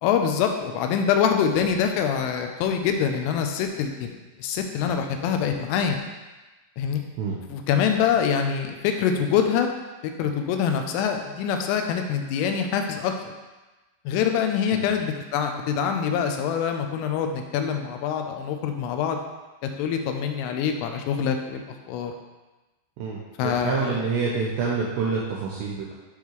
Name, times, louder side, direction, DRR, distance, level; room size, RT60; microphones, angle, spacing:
voice 1, 0.0-6.0 6.8-7.0 7.5-9.7 10.2-13.1 14.1-19.2 19.6-22.1 23.4-24.0, left 7 dB, 85° left, 5 dB, 3.2 m, -25 dB
voice 2, 23.0-25.9, right 5 dB, 80° right, -5 dB, 2.6 m, -27 dB
9.8 x 3.7 x 3.1 m, 1.1 s
omnidirectional pair, 5.7 m